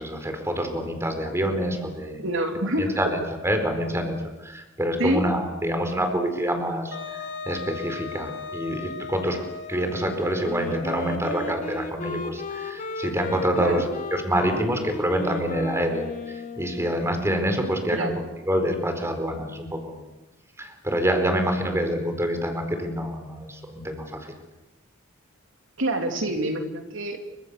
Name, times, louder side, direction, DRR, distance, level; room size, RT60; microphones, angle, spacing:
voice 1, 0.0-2.2 2.8-9.4 9.7-18.1 18.4-20.0 20.6-24.4, equal, 15° right, 5 dB, 4.4 m, -27 dB
voice 2, 2.2-3.0 5.0-5.2 13.6-13.8 17.9-18.2 25.8-27.2, right 1 dB, 70° right, 4 dB, 3.2 m, -26 dB
Wind instrument woodwind instrument, 6.9-11.3, left 5 dB, 65° left, 2.2 m, -38 dB
Wind instrument woodwind instrument 2, 10.4-17.1, left 2 dB, 40° left, 2.5 m, -34 dB
29.5 x 25.5 x 6.9 m, 0.99 s
head